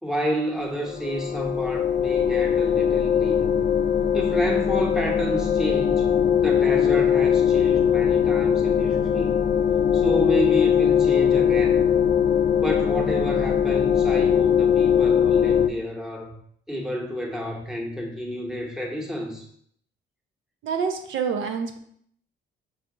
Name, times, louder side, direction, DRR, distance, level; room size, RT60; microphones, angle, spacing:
voice 1, 0.0-3.6 4.1-6.1 6.4-9.3 9.9-11.9 12.6-16.4 16.7-19.4, equal, ahead, -1 dB, 1.1 m, -29 dB
sound 1, 0.8-15.7, left 8 dB, 40° left, 0.4 m, -21 dB
voice 2, 20.6-21.8, right 6 dB, 75° right, 5 dB, 0.6 m, -27 dB
5.7 x 2.4 x 3.7 m, 0.65 s
cardioid pair, 90°, 20 cm